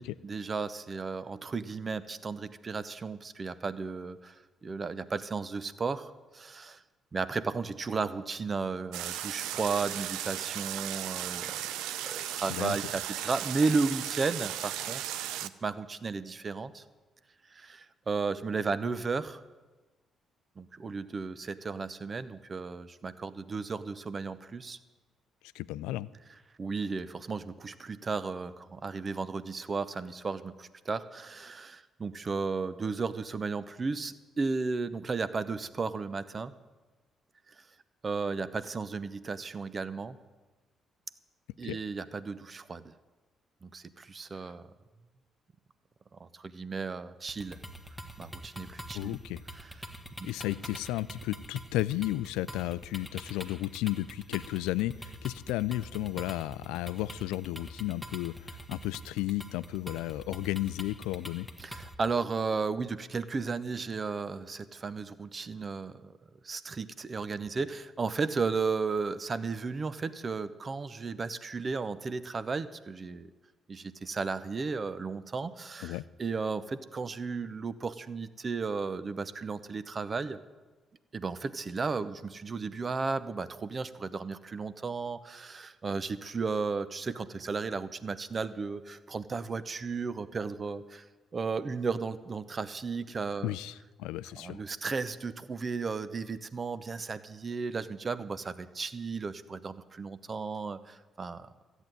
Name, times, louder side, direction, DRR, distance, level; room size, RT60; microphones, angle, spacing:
voice 1, 0.0-6.8 7.1-11.6 12.0-15.1 15.4-16.8 17.5-19.4 20.6-24.8 26.6-36.5 37.5-37.6 38.0-40.2 41.6-42.9 43.6-44.7 46.2-47.6 48.2-49.2 49.5-49.7 50.2-50.3 61.6-66.1 66.4-73.3 73.7-80.4 81.1-91.0 91.3-93.5 94.4-101.5, right 4 dB, 40° right, 14 dB, 0.8 m, -34 dB
sound 1, 8.9-15.5, right 11 dB, 80° right, 0.5 m, -36 dB
voice 2, 25.5-26.1 41.6-41.8 48.9-49.4 50.2-61.5 75.8-76.0 93.4-94.6, left 16 dB, 80° left, 17 dB, 0.3 m, -33 dB
sound 2, 47.3-61.9, equal, ahead, 1.5 m, -45 dB
13.5 x 8.2 x 9.1 m, 1.2 s
hypercardioid pair, 50°, 0 cm